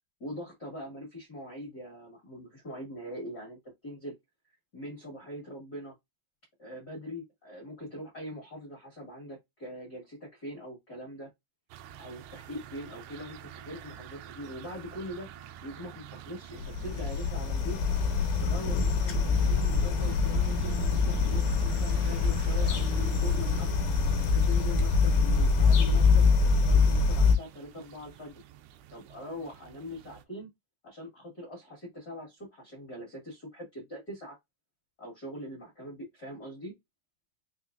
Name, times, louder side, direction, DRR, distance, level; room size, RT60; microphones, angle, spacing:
voice 1, 0.2-4.1 4.7-5.9 6.6-11.3 12.0-15.3 15.6-17.8 18.4-23.9 24.2-26.3 26.6-28.4 28.9-30.5 30.8-34.4 35.0-36.7, equal, 55° left, 1.0 m, -42 dB
sound 1, 11.7-30.2, right 10 dB, 80° right, 2.6 m, -46 dB
sound 2, 16.6-27.4, left 4 dB, 75° left, 2.5 m, -25 dB
6.3 x 2.8 x 2.5 m
omnidirectional pair, 5.0 m